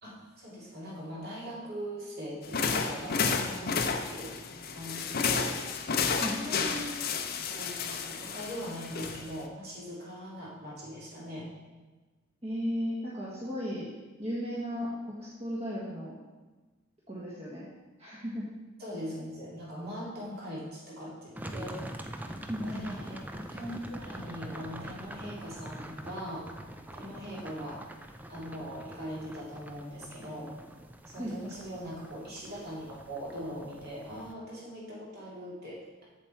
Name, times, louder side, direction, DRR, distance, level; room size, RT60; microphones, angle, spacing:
voice 1, 0.0-4.3 4.7-5.5 6.1-7.1 7.5-11.5 18.8-21.8 22.5-23.2 23.5-26.5 26.9-27.8 28.3-30.5 31.0-36.0, equal, 50° right, -5 dB, 2.6 m, -41 dB
sound 1, 2.4-9.4, left 5 dB, 45° left, 0.6 m, -31 dB
voice 2, 12.4-13.9 14.2-16.1 17.1-17.7 18.0-18.5 22.5-22.9 31.2-31.5, equal, 30° right, -7 dB, 1.4 m, -35 dB
sound 2, 21.4-34.3, right 1 dB, 10° right, 0.4 m, -44 dB
7.5 x 7.2 x 4.4 m, 1.2 s
head